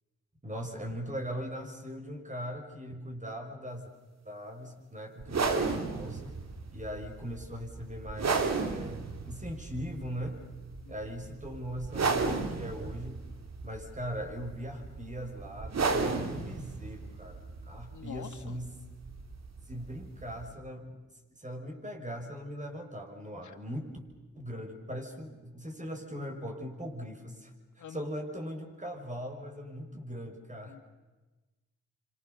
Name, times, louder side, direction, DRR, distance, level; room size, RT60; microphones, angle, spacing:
voice 1, 0.4-3.9 4.2-6.3 6.7-10.4 10.9-13.2 13.6-18.8 19.7-21.0 21.4-23.9 24.3-30.8, equal, 25° right, 3 dB, 6.4 m, -40 dB
sound 1, 5.2-20.5, right 4 dB, 60° right, 2.7 m, -34 dB
voice 2, 10.8-11.1 17.9-18.6 23.4-23.6 27.8-28.0 30.7-30.8, left 8 dB, 75° left, 9 dB, 1.9 m, -46 dB
28.0 x 26.0 x 7.0 m, 1.2 s
supercardioid pair, 45°, 30 cm